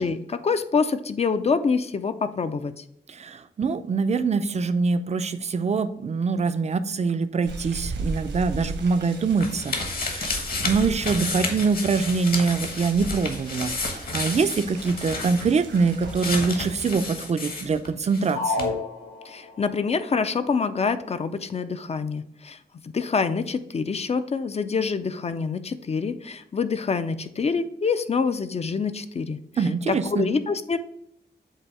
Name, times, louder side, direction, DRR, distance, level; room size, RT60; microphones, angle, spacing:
voice 1, 0.0-2.8 19.2-22.6 22.8-29.4 29.9-30.8, left 5 dB, 35° left, 11 dB, 0.5 m, -26 dB
voice 2, 3.1-10.4 10.6-18.8 29.6-30.3, right 4 dB, 40° right, 10 dB, 0.5 m, -24 dB
sound 1, 7.5-17.1, right 3 dB, 80° right, 1.4 m, -37 dB
sound 2, 8.7-18.3 18.6-18.7, left 3 dB, 55° left, 1.4 m, -31 dB
sound 3, 18.2-19.7, left 3 dB, 90° left, 1.5 m, -29 dB
7.6 x 2.8 x 4.8 m, 0.74 s
wide cardioid pair, 135°, 18 cm